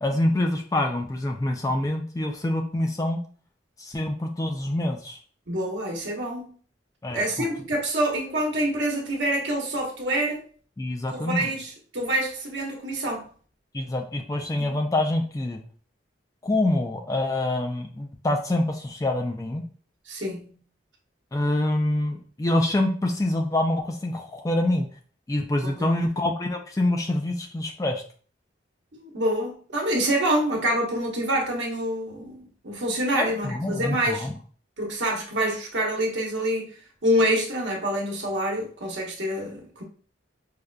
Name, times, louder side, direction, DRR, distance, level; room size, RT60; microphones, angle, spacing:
voice 1, 0.0-3.2 3.8-5.2 7.0-7.5 10.8-11.5 13.7-15.6 16.4-19.6 21.3-24.9 25.3-28.0 33.1-34.4, left 1 dB, 15° left, 0.3 m, -26 dB
voice 2, 5.5-6.6 7.1-10.4 11.1-13.3 14.6-14.8 20.1-20.6 25.6-25.9 28.9-34.3 34.8-36.7 37.0-39.8, right 1 dB, 70° right, 1.0 m, -26 dB
4.9 x 2.4 x 2.2 m
head